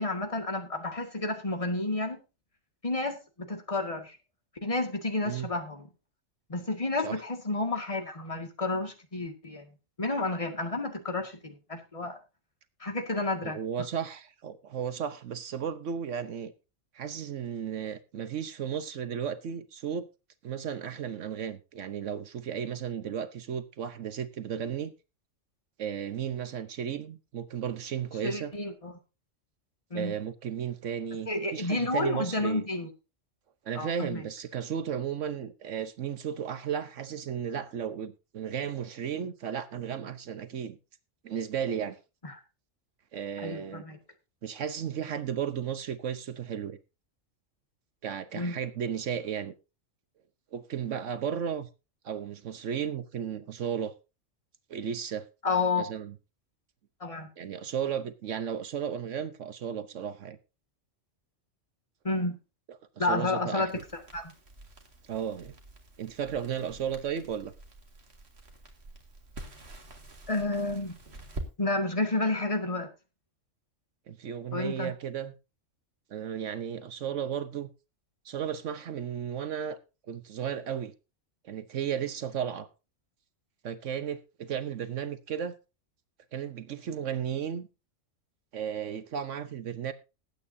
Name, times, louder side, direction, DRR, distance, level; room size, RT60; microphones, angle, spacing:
voice 1, 0.0-2.2 2.8-4.2 4.6-5.9 6.5-9.7 10.0-12.2 12.8-13.6 28.2-28.9 29.9-30.1 31.3-32.9 33.8-34.2 42.2-42.4 43.4-44.0 48.3-48.6 55.4-55.9 57.0-57.3 62.0-62.4 63.0-63.7 64.1-64.3 70.3-71.0 71.6-72.9 74.5-74.9, left 2 dB, 25° left, 2.0 m, -30 dB
voice 2, 13.4-16.5 16.9-20.1 20.4-24.9 25.8-28.5 29.9-32.7 33.6-40.8 41.2-42.0 43.1-43.8 44.4-46.8 48.0-49.5 50.5-51.7 52.0-53.9 54.7-55.3 55.8-56.1 57.4-60.4 63.0-63.8 65.1-65.5 66.0-67.5 74.1-75.3 76.1-77.7 78.2-79.8 80.1-80.9 81.4-82.7 83.6-85.5 86.3-87.7 88.5-89.9, right 8 dB, 70° right, 1.2 m, -34 dB
Crackle, 63.6-71.5, right 2 dB, 55° right, 2.3 m, -46 dB
20.0 x 8.7 x 2.7 m
omnidirectional pair, 1.3 m